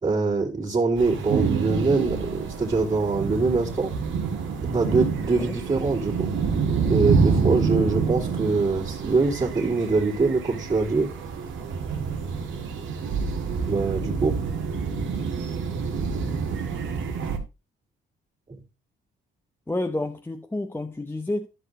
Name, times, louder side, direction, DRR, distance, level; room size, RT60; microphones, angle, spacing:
voice 1, 0.0-3.9 4.7-6.3 6.9-11.1 13.7-14.4 18.5-18.6, right 3 dB, 30° right, 3.2 m, -24 dB
sound 1, 1.0-17.4, right 5 dB, 75° right, 2.1 m, -27 dB
voice 2, 19.7-21.5, left 2 dB, 10° left, 0.9 m, -29 dB
13.0 x 5.4 x 4.0 m
cardioid pair, 90°, 20 cm